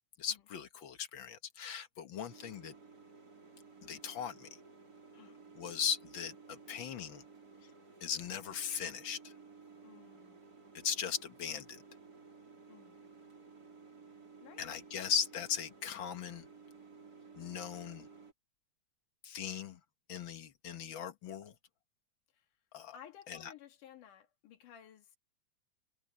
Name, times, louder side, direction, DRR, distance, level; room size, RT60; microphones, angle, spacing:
voice 1, 0.2-2.7 3.8-4.5 5.6-7.2 8.0-9.3 10.7-11.8 14.6-16.5 17.3-18.1 19.2-19.8 20.1-21.5 22.7-23.0 23.3-23.5, left 7 dB, 55° left, 1.4 m, -38 dB
sound 1, 2.3-18.3, right 4 dB, 30° right, 4.5 m, -56 dB
voice 2, 9.8-10.4 12.7-13.0 14.4-14.7 14.9-15.1 22.3-22.5 22.9-25.2, left 9 dB, 85° left, 3.4 m, -56 dB
omnidirectional pair, 3.5 m